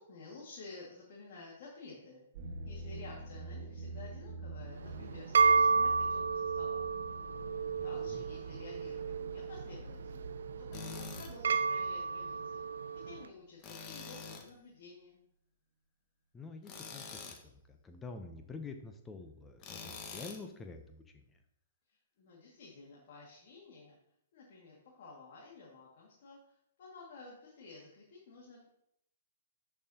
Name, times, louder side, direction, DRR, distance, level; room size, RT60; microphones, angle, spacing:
voice 1, 0.0-2.3 2.6-6.8 7.8-12.6 12.9-15.2 21.9-24.0 24.3-28.7, left 3 dB, 55° left, -4 dB, 2.0 m, -52 dB
sound 1, 2.3-12.7, right 2 dB, 50° right, 1.4 m, -47 dB
sound 2, 4.7-13.2, right 5 dB, 75° right, 0.3 m, -32 dB
voice 2, 7.7-8.2 16.3-21.4, left 3 dB, 15° left, 6 dB, 0.7 m, -48 dB
Tools, 10.7-11.3 13.6-14.5 16.6-17.4 19.6-20.4, left 5 dB, 30° left, 1.3 m, -45 dB
10.0 x 5.6 x 2.8 m, 0.75 s
hypercardioid pair, 130°, 0 cm